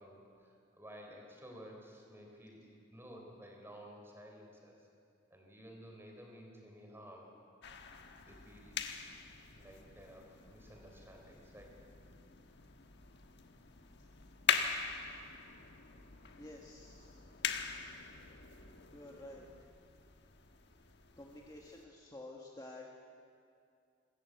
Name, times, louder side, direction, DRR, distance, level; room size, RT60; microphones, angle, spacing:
voice 1, 0.0-4.8 5.3-7.3 8.2-8.8 9.5-11.8, equal, 10° right, 1 dB, 4.0 m, -54 dB
sound 1, 7.6-21.8, left 7 dB, 60° left, 1.3 m, -42 dB
voice 2, 16.4-17.3 18.9-19.5 21.2-22.9, left 1 dB, 20° left, -1 dB, 1.5 m, -51 dB
25.5 x 14.0 x 8.1 m, 2.4 s
head